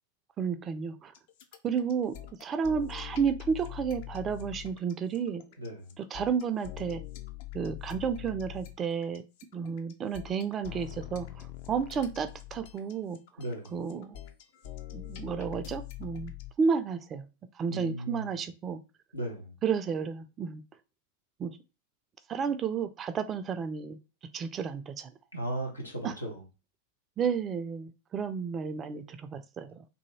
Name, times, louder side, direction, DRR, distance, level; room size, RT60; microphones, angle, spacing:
voice 1, 0.4-1.1 1.6-2.2 2.4-5.4 6.0-7.0 7.5-9.2 9.5-13.2 13.7-14.2 14.9-16.3 16.6-17.3 17.6-18.8 19.6-20.6 21.4-21.6 22.3-24.0 24.3-25.1 26.0-26.1 27.2-29.8, right 6 dB, 25° right, 0.3 m, -32 dB
sound 1, 1.1-16.5, left 16 dB, 50° left, 0.4 m, -43 dB
voice 2, 5.6-5.9 13.4-13.8 17.7-18.4 19.1-19.5 25.3-26.4, right 1 dB, 85° left, 0.9 m, -36 dB
2.7 x 2.6 x 2.8 m
figure-of-eight pair, 90°, 0 cm